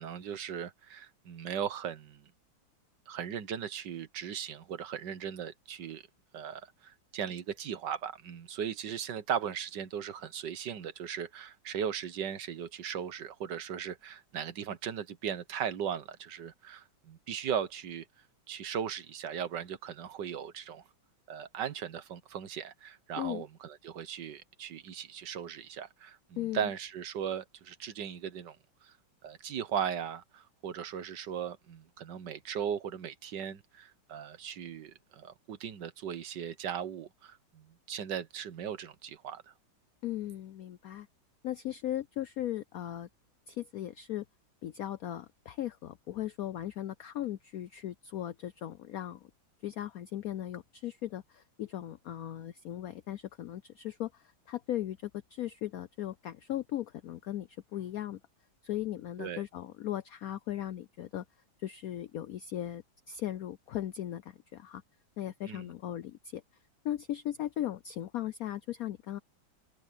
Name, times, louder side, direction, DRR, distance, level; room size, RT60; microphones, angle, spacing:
voice 1, 0.0-2.3 3.1-6.0 6.3-18.1 18.5-20.8 21.3-28.6 28.8-28.9 29.2-39.5 59.2-59.4 65.5-65.7, right 8 dB, 65° right, 1.6 m, -38 dB
voice 2, 26.4-26.7 40.0-41.1 41.4-43.1 43.5-44.2 44.6-49.3 49.6-58.2 58.6-61.2 61.6-64.8 65.2-66.4 66.8-69.2, left 12 dB, 90° left, 0.7 m, -37 dB
omnidirectional pair, 2.2 m